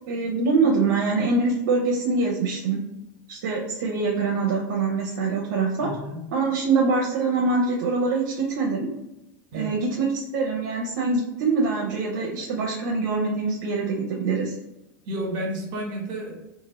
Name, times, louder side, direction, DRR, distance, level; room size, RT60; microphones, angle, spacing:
voice 1, 0.1-2.8 3.3-5.9 6.3-8.9 9.5-14.5, right 4 dB, 70° right, -1 dB, 0.6 m, -24 dB
voice 2, 5.8-6.2 9.5-9.7 15.1-16.3, equal, 45° right, 1 dB, 1.1 m, -31 dB
2.7 x 2.4 x 3.0 m, 0.94 s
supercardioid pair, 120°, 10 cm